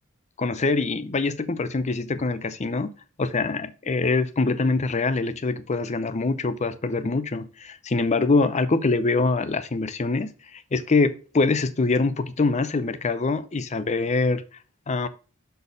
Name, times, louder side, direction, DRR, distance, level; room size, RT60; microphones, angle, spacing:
voice 1, 0.4-2.9 3.2-14.4 14.9-15.1, left 3 dB, 35° left, 0.5 m, -24 dB
6.7 x 4.2 x 5.3 m
head